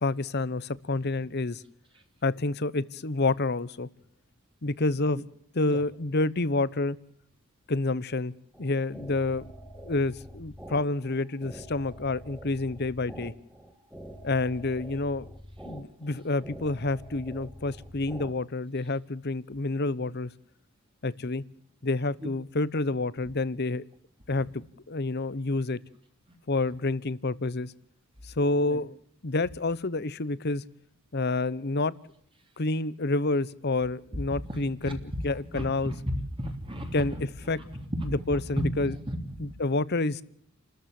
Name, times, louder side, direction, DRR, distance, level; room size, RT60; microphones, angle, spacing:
voice 1, 0.0-1.6 2.2-3.9 4.6-5.2 5.5-7.0 7.7-8.3 8.6-9.4 9.8-13.3 14.2-15.3 15.7-20.3 21.0-21.4 21.8-23.8 24.3-24.6 24.9-25.8 26.5-27.7 28.4-28.9 29.2-30.6 31.1-31.9 32.6-35.9 36.9-37.6 38.0-38.9 39.4-40.2, left 2 dB, 50° left, 19 dB, 0.9 m, -28 dB
sound 1, 8.5-18.3, equal, 5° right, 2.3 m, -46 dB
voice 2, 34.5-35.0 35.5-36.0 36.4-37.0 37.9-38.1 38.6-39.5, equal, 25° right, 3 dB, 3.0 m, -34 dB
30.0 x 13.5 x 7.7 m, 0.66 s
head